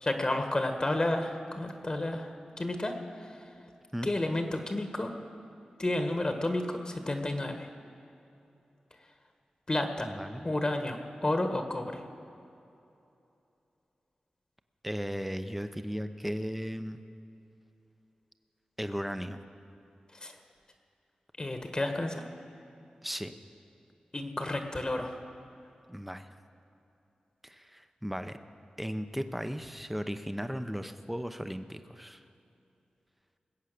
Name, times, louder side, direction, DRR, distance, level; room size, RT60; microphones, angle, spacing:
voice 1, 0.0-3.5 4.0-5.1 5.8-7.7 9.7-10.1 10.4-12.0 20.1-20.4 21.4-22.2 24.1-25.1, left 1 dB, 30° left, 5 dB, 1.3 m, -31 dB
voice 2, 10.0-10.5 14.8-17.0 18.8-19.4 23.0-23.3 25.9-26.3 27.4-28.4 28.8-32.2, equal, 5° right, 9 dB, 0.8 m, -36 dB
21.0 x 8.2 x 6.7 m, 2.8 s
wide cardioid pair, 70°, 3 cm